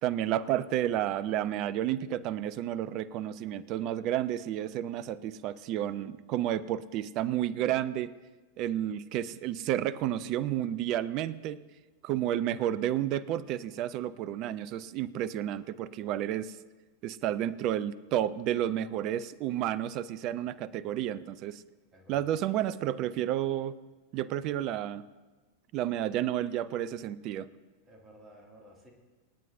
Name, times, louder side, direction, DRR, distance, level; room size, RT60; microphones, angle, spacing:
voice 1, 0.0-8.1 8.6-11.6 12.0-16.5 17.0-21.6 22.1-23.8 24.1-25.0 25.7-27.5, right 12 dB, 40° right, 19 dB, 0.5 m, -31 dB
voice 2, 21.9-22.4 24.3-24.5 27.9-28.9, equal, 20° right, 0 dB, 2.3 m, -55 dB
26.5 x 9.2 x 2.7 m, 1.3 s
figure-of-eight pair, 90°, 0 cm